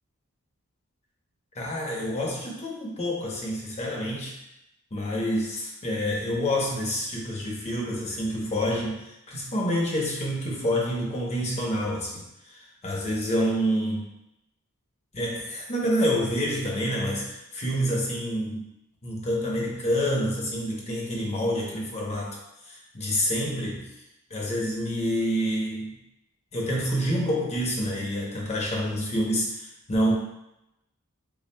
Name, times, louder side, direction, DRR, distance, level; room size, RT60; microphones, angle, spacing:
voice 1, 1.5-4.4 4.9-14.1 15.1-18.7 19.0-22.4 22.6-23.9 24.3-25.9 26.5-30.2, equal, 30° left, -3 dB, 0.9 m, -28 dB
7.0 x 2.3 x 2.2 m, 0.88 s
head